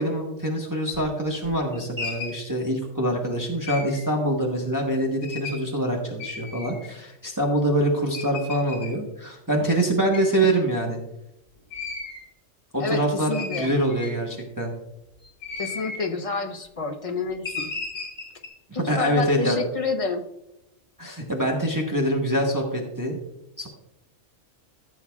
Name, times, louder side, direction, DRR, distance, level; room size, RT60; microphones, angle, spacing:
voice 1, 0.0-11.0 12.7-14.7 18.7-19.6 21.0-23.2 23.6-23.7, right 1 dB, 15° right, -1 dB, 1.2 m, -25 dB
sound 1, 0.9-1.0 1.4-2.4 3.7-4.0 5.2-5.6 6.2-6.9 7.5-7.6 8.1-8.9 10.1-10.3 11.7-12.2 12.8-12.9 13.3-14.3 15.2-16.0 17.4-18.5, left 4 dB, 50° left, 4.0 m, -35 dB
voice 2, 12.8-13.7 15.6-17.7 19.0-20.2, left 4 dB, 30° left, 4 dB, 0.8 m, -28 dB
15.0 x 7.2 x 2.4 m, 0.85 s
omnidirectional pair, 1.3 m